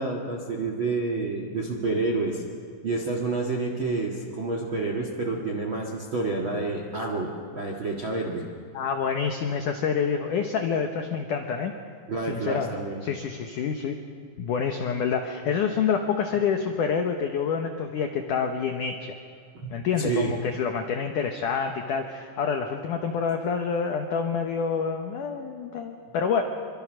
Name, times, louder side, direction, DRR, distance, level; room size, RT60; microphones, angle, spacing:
voice 1, 0.0-2.4 2.8-8.5 12.1-13.0 19.5-20.3, right 3 dB, 55° right, 1 dB, 1.4 m, -29 dB
voice 2, 8.7-11.7 12.3-12.7 13.0-14.0 14.4-19.2 19.7-26.4, left 6 dB, 85° left, 4 dB, 1.8 m, -27 dB
26.5 x 24.5 x 6.4 m, 2.3 s
omnidirectional pair, 5.5 m